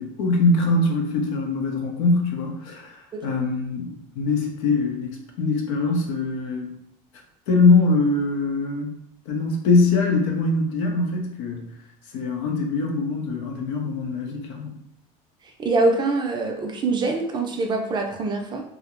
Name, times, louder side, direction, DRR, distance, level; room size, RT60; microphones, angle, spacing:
voice 1, 0.0-6.8 7.5-8.9 9.3-11.6 12.1-14.8, left 3 dB, 85° left, 2 dB, 0.7 m, -22 dB
voice 2, 15.4-18.6, right 3 dB, 25° right, 2 dB, 0.4 m, -24 dB
2.4 x 2.0 x 3.0 m, 0.77 s
supercardioid pair, 125°, 17 cm